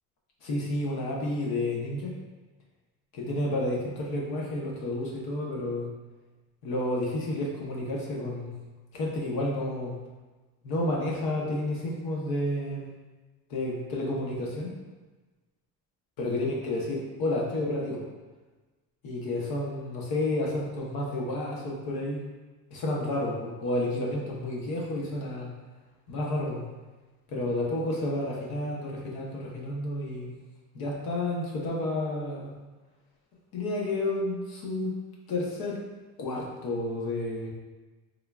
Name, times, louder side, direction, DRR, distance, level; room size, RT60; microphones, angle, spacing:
voice 1, 0.4-2.1 3.1-5.9 6.6-8.5 8.9-10.0 10.6-12.9 13.5-14.7 16.2-18.0 19.0-22.2 22.7-25.5 26.1-26.6 27.3-30.3 30.7-32.5 33.5-34.9 35.3-35.8 36.2-37.5, left 1 dB, 75° left, -2 dB, 1.0 m, -30 dB
3.7 x 3.4 x 2.3 m, 1.2 s
cardioid pair, 165°, 36 cm